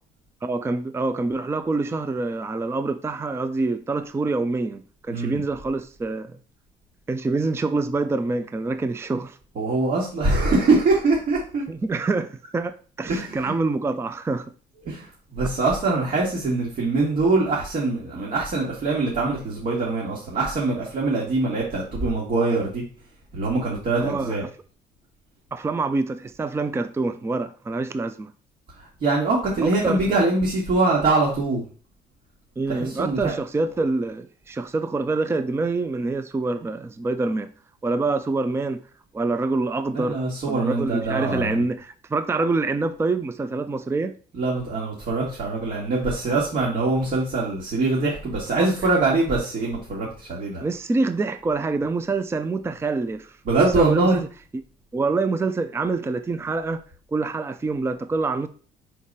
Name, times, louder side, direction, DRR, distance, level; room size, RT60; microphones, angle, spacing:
voice 1, 0.4-6.4 7.1-9.4 10.2-10.5 11.7-14.5 15.4-15.5 24.0-24.5 25.5-28.3 29.6-30.0 32.6-37.5 37.8-38.8 39.1-40.2 40.5-44.2 48.6-48.7 50.6-54.3 54.5-54.6 54.9-56.8 57.1-58.5, right 3 dB, 15° right, 0.4 m, -26 dB
voice 2, 9.6-11.7 13.0-13.5 14.8-22.8 23.3-24.4 29.0-31.6 32.7-33.3 39.9-41.6 44.4-50.6 53.5-54.2, right 3 dB, 50° right, 2.2 m, -23 dB
4.9 x 4.6 x 5.5 m
cardioid pair, 110°, 17 cm